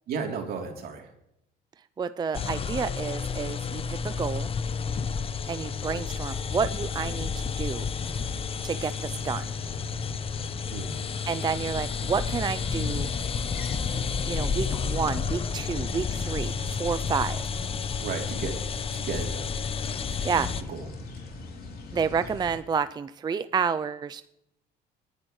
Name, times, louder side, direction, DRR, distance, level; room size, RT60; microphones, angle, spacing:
voice 1, 0.1-1.1 10.7-11.0 18.0-18.6 18.9-19.6 20.2-20.9, right 5 dB, 65° right, 2 dB, 3.3 m, -34 dB
voice 2, 2.0-4.5 5.5-7.9 8.6-9.5 11.3-13.1 14.3-17.4 20.2-20.5 21.9-24.2, right 6 dB, 25° right, 13 dB, 0.4 m, -30 dB
sound 1, 2.3-20.6, left 6 dB, 35° left, 0.8 m, -31 dB
sound 2, 8.0-22.6, left 3 dB, 60° left, 3.0 m, -41 dB
20.0 x 10.5 x 3.2 m, 0.81 s
cardioid pair, 110°, 17 cm